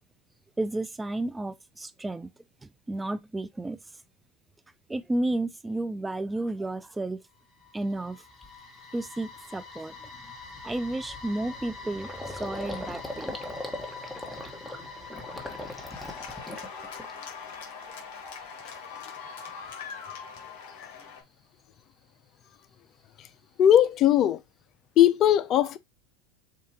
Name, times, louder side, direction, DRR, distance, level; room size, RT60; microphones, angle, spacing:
voice 1, 0.6-2.3 2.9-3.8 4.9-7.2 7.7-8.2 8.9-9.9 10.6-13.4, right 2 dB, 10° right, 0.4 m, -32 dB
sound 1, 7.3-17.4, left 3 dB, 30° left, 1.9 m, -45 dB
Gurgling, 7.8-7.9 8.4-8.7 9.0-9.2 9.5-17.5 17.8-18.5, left 1 dB, 5° left, 1.2 m, -41 dB
Cheering / Applause, 11.5-21.2, left 6 dB, 65° left, 1.3 m, -44 dB
voice 2, 23.6-24.4 25.0-25.8, left 11 dB, 45° left, 0.5 m, -19 dB
7.1 x 2.4 x 2.9 m
hypercardioid pair, 90°, 0 cm